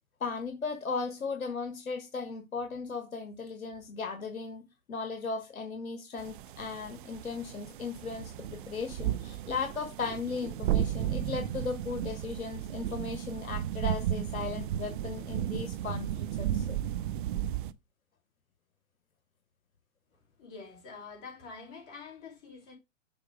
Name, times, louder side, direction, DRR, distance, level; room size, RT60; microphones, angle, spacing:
voice 1, 0.2-16.8, left 4 dB, 90° left, 1.3 m, -37 dB
sound 1, 6.2-17.7, right 11 dB, 40° right, 0.5 m, -34 dB
voice 2, 20.4-22.7, left 5 dB, 40° left, 4.9 m, -46 dB
7.0 x 4.3 x 4.9 m
hypercardioid pair, 125°, 41 cm